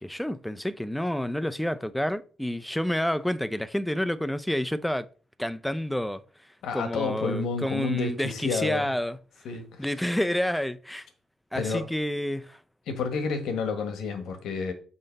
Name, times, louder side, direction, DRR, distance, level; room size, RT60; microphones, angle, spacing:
voice 1, 0.0-5.1 5.4-6.2 6.7-9.2 9.8-11.1 11.5-12.6, left 1 dB, 5° left, 0.5 m, -29 dB
voice 2, 6.6-8.9 9.4-9.9 11.5-11.9 12.9-14.7, left 4 dB, 80° left, 1.4 m, -30 dB
5.8 x 3.9 x 5.2 m
cardioid pair, 90°, 0 cm